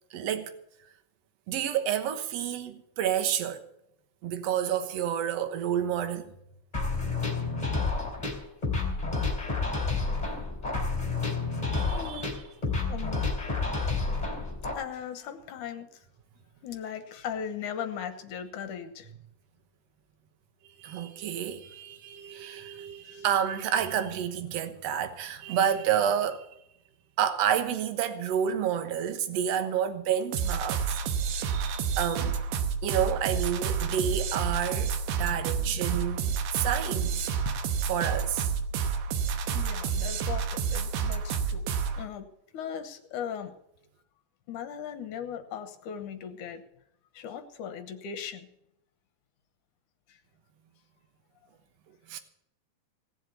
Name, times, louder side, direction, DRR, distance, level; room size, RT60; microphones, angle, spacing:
voice 1, 0.1-0.5 1.5-3.6 4.2-6.3 11.7-12.3 20.8-26.5 27.2-32.4 32.8-37.2 37.9-38.5 52.1-52.2, right 9 dB, 60° right, 1.9 m, -29 dB
sound 1, 6.7-14.7, left 3 dB, 10° left, 3.6 m, -30 dB
voice 2, 11.9-12.3 12.9-13.3 14.7-16.1 16.6-19.1 23.0-23.3 37.5-37.6 39.5-41.6 42.0-42.3 42.5-43.5 44.5-46.6 47.1-48.5 50.1-50.2, left 8 dB, 70° left, 2.3 m, -38 dB
sound 2, 30.3-42.0, right 6 dB, 80° right, 2.8 m, -29 dB
18.0 x 7.4 x 8.2 m
omnidirectional pair, 4.1 m